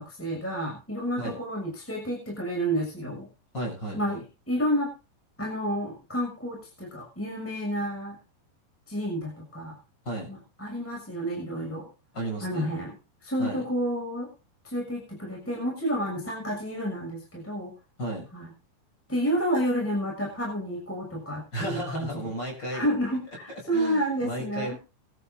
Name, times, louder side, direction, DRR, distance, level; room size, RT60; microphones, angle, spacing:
voice 1, 0.0-3.3 3.9-4.9 5.4-8.2 8.9-9.8 10.3-11.9 12.4-12.9 13.2-14.3 14.6-17.7 18.3-18.5 19.1-22.3 22.7-24.8, equal, 5° left, -1 dB, 6.2 m, -30 dB
voice 2, 3.5-4.2 10.0-10.3 12.1-12.7 13.4-13.6 18.0-18.3 21.5-22.8 23.5-24.8, right 1 dB, 20° left, 1 dB, 8.3 m, -34 dB
23.0 x 12.5 x 2.7 m, 0.31 s
omnidirectional pair, 5.2 m